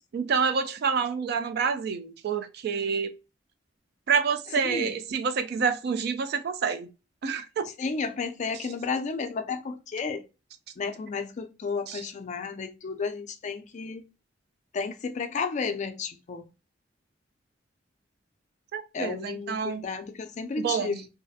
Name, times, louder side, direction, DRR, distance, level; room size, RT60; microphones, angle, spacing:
voice 1, 0.1-3.1 4.1-6.9 7.2-7.7 8.5-8.7 11.9-12.1 18.7-19.8 20.6-21.0, right 6 dB, 60° right, 0.3 m, -28 dB
voice 2, 4.6-4.9 7.8-10.2 10.8-14.1 14.7-16.5 18.9-21.1, left 4 dB, 40° left, 0.4 m, -32 dB
2.3 x 2.1 x 2.6 m
head